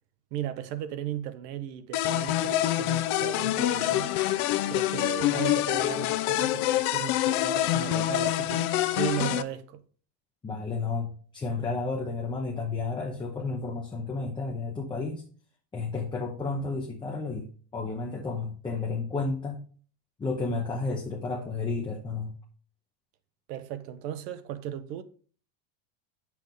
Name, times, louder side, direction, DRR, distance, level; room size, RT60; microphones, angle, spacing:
voice 1, 0.3-4.1 4.7-8.7 8.9-9.8 23.5-25.0, right 10 dB, 65° right, 1.0 m, -36 dB
sound 1, 1.9-9.4, left 14 dB, 65° left, 0.7 m, -26 dB
voice 2, 10.4-15.2 15.7-19.6 20.2-22.3, left 3 dB, 10° left, 0.7 m, -32 dB
7.6 x 6.1 x 3.5 m
supercardioid pair, 150°, 49 cm